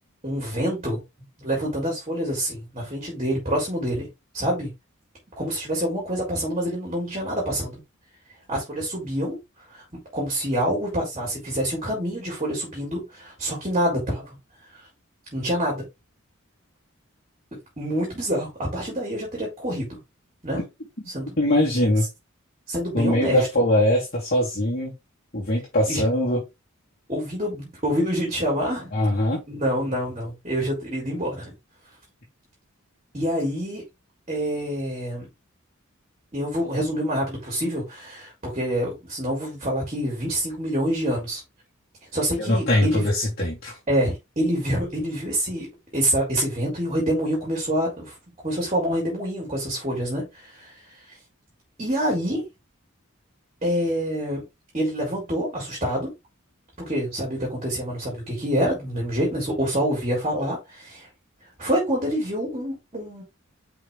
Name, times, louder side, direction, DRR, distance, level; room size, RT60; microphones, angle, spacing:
voice 1, 0.2-1.0 1.4-4.1 4.3-4.7 5.4-7.8 8.5-9.4 9.7-14.4 15.3-15.9 17.8-20.0 20.4-20.6 21.1-21.4 22.7-23.5 25.9-26.0 27.1-28.9 29.5-31.5 33.1-33.8 34.3-35.3 36.3-41.4 42.1-43.1 43.9-48.1 48.4-50.7 51.1-51.2 51.8-52.5 53.6-54.4 54.7-56.1 56.8-61.1 61.6-63.2, equal, 30° right, 3.6 m, -26 dB
voice 2, 21.4-22.1 22.9-24.9 25.3-26.4 28.9-29.4 42.4-43.8, left 1 dB, 45° left, 2.7 m, -22 dB
5.8 x 5.1 x 3.6 m
head